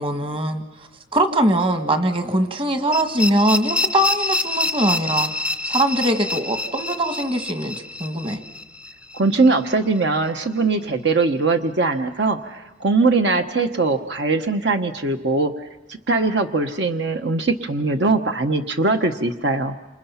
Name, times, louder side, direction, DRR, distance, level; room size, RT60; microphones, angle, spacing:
voice 1, 0.0-5.3 5.6-8.4, right 1 dB, 30° right, 7 dB, 1.6 m, -22 dB
sound 1, 2.9-9.7, left 2 dB, 5° right, 0.7 m, -27 dB
voice 2, 9.1-15.5 16.1-19.7, right 3 dB, 65° right, 7 dB, 1.1 m, -21 dB
28.5 x 27.0 x 5.7 m, 1.1 s
head